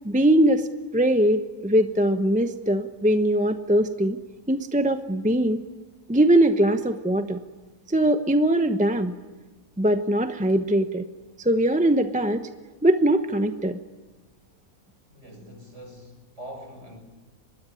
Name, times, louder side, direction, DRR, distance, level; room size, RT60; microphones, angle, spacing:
voice 1, 0.0-0.7 0.9-4.2 4.5-5.6 6.1-7.4 7.9-9.1 9.8-11.1 11.4-12.5 12.8-13.8, right 1 dB, 5° right, 8 dB, 0.8 m, -21 dB
voice 2, 15.1-17.0, equal, 50° right, 3 dB, 7.1 m, -43 dB
25.0 x 21.0 x 9.9 m, 1.2 s
omnidirectional pair, 1.5 m